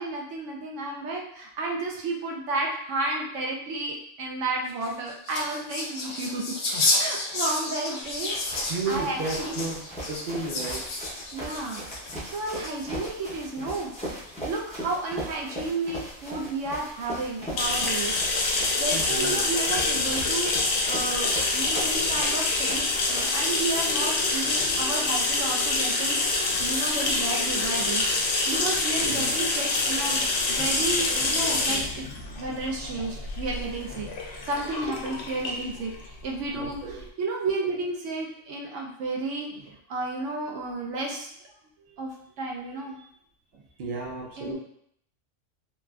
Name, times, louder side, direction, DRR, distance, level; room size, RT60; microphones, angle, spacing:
voice 1, 0.0-6.6 6.9-9.6 11.3-11.8 12.2-18.1 18.5-28.1 28.5-32.1 32.4-41.3 42.0-43.0 44.4-44.6, right 2 dB, 80° right, -1 dB, 0.9 m, -32 dB
sound 1, 4.7-13.1 13.7-14.3, left 2 dB, 60° left, 0.5 m, -31 dB
sound 2, 8.0-24.0, equal, 10° left, 0.5 m, -39 dB
voice 2, 8.7-9.8 10.1-10.8 18.9-19.3 29.0-29.3 36.5-37.0 41.8-42.0 43.8-44.5, right 3 dB, 50° right, -4 dB, 0.7 m, -33 dB
sound 3, 17.6-37.0, left 3 dB, 80° left, 0.9 m, -26 dB
3.0 x 2.4 x 2.3 m, 0.69 s
omnidirectional pair, 1.3 m